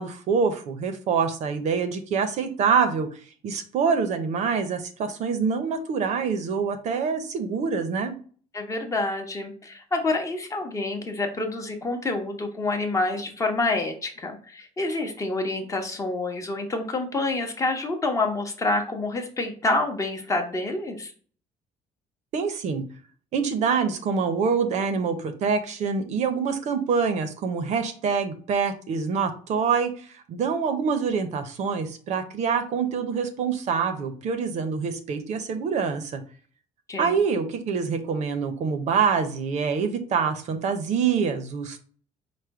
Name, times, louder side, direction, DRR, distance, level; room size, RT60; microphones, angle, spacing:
voice 1, 0.0-3.1 3.4-8.2 22.3-22.8 23.3-29.9 30.3-36.2 37.0-41.8, right 6 dB, 55° right, 8 dB, 0.6 m, -25 dB
voice 2, 8.5-21.1 36.9-37.1, left 2 dB, 20° left, 4 dB, 0.7 m, -27 dB
4.9 x 2.1 x 4.5 m, 0.43 s
cardioid pair, 150°, 14 cm